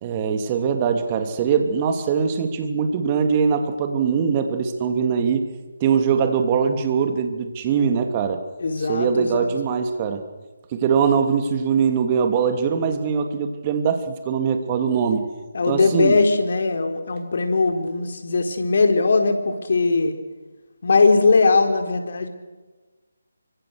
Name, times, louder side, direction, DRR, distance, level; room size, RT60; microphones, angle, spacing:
voice 1, 0.0-5.4 5.8-8.4 8.9-10.2 10.7-15.3 15.6-16.2, right 6 dB, 25° right, 6 dB, 2.9 m, -22 dB
voice 2, 8.6-9.5 15.5-20.2 20.8-22.3, left 3 dB, 55° left, 6 dB, 4.1 m, -20 dB
29.0 x 25.5 x 6.6 m, 1.3 s
figure-of-eight pair, 155°, 0 cm